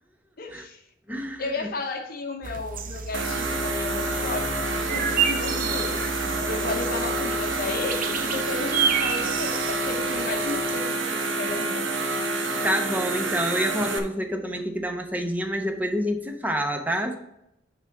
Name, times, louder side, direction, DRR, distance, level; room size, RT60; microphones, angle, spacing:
voice 1, 0.4-0.8 1.4-6.1 6.5-12.0, left 2 dB, 50° left, 5 dB, 0.9 m, -34 dB
voice 2, 1.1-1.7 12.6-17.2, equal, 10° right, 4 dB, 0.9 m, -28 dB
sound 1, 2.4-10.8, right 6 dB, 45° right, 0.6 m, -31 dB
sound 2, 3.1-14.0, right 2 dB, 85° right, 1.1 m, -28 dB
8.9 x 3.6 x 5.8 m, 0.83 s
head